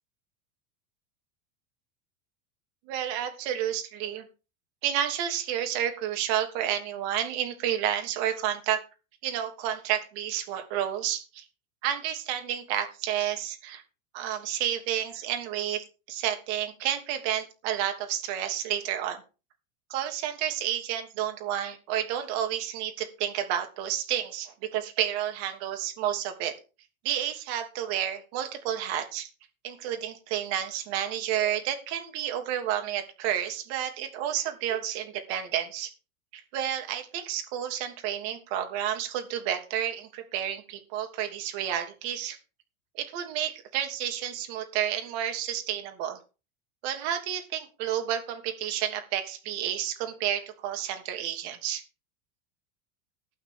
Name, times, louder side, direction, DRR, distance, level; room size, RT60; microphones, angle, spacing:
voice 1, 2.9-4.2 4.8-8.8 9.2-11.4 11.8-13.8 14.1-19.2 19.9-26.5 27.0-29.3 29.6-35.9 36.3-42.4 42.9-46.2 46.8-51.8, right 10 dB, 55° right, 6 dB, 3.1 m, -30 dB
12.0 x 5.3 x 8.9 m, 0.32 s
supercardioid pair, 130°, 42 cm